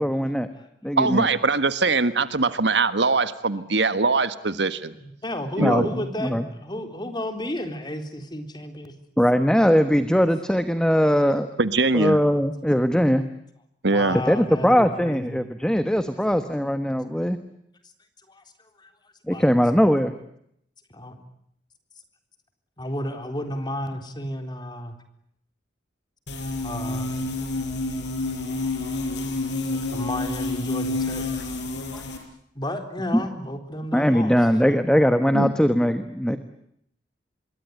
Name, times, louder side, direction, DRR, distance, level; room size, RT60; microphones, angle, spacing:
voice 1, 0.0-0.5 0.8-1.3 5.6-6.5 9.2-11.5 11.9-13.2 14.3-17.4 19.3-20.1 31.9-32.0 33.1-33.2 33.9-36.4, equal, 5° left, 10 dB, 1.3 m, -20 dB
voice 2, 1.0-4.9 5.6-5.9 11.6-12.2 13.8-14.2 35.3-35.5, right 3 dB, 70° right, 13 dB, 1.5 m, -22 dB
voice 3, 5.0-8.9 13.9-15.4 18.3-18.4 18.8-18.9 19.3-19.5 20.9-21.2 22.8-25.0 26.6-27.1 29.7-31.3 32.6-34.4 34.6-34.9, left 1 dB, 25° left, 7 dB, 3.8 m, -32 dB
sound 1, 26.3-32.2, left 2 dB, 65° left, 6.5 m, -29 dB
26.0 x 23.0 x 9.4 m, 0.73 s
head